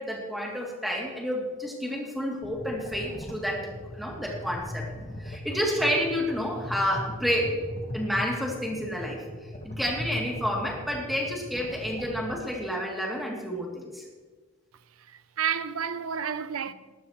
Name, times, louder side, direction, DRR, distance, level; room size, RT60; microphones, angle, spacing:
voice 1, 0.0-4.9 5.2-7.5 7.9-9.2 9.6-14.0, equal, ahead, 2.7 m, -30 dB
sound 1, 2.4-12.4, left 1 dB, 30° left, 1.4 m, -39 dB
voice 2, 15.0-16.7, right 8 dB, 85° right, 0.6 m, -31 dB
20.0 x 13.5 x 3.1 m
head